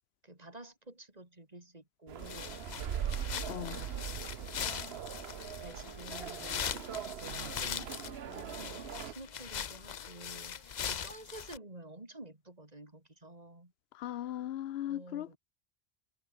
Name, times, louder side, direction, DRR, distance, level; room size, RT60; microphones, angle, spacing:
voice 1, 0.2-3.1 3.7-4.8 5.2-5.3 5.6-7.1 7.4-13.7 14.8-15.4, right 2 dB, 40° right, 4.1 m, -51 dB
sound 1, 2.1-9.1, right 9 dB, 80° right, 1.1 m, -41 dB
sound 2, 2.2-11.6, left 8 dB, 50° left, 0.7 m, -41 dB
voice 2, 3.5-3.9 13.9-15.4, left 12 dB, 75° left, 0.8 m, -38 dB
Wind instrument woodwind instrument, 3.5-11.8, left 2 dB, 30° left, 1.9 m, -61 dB
omnidirectional pair, 1.1 m